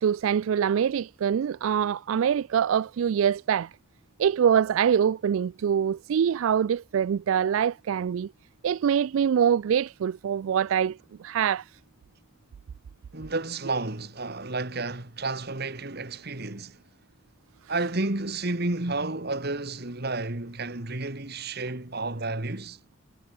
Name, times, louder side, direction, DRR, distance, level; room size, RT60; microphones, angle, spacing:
voice 1, 0.0-3.7 4.2-8.3 8.6-11.7, right 8 dB, 75° right, 0.3 m, -24 dB
voice 2, 13.1-16.8 17.7-22.8, right 2 dB, 50° right, 2.0 m, -31 dB
head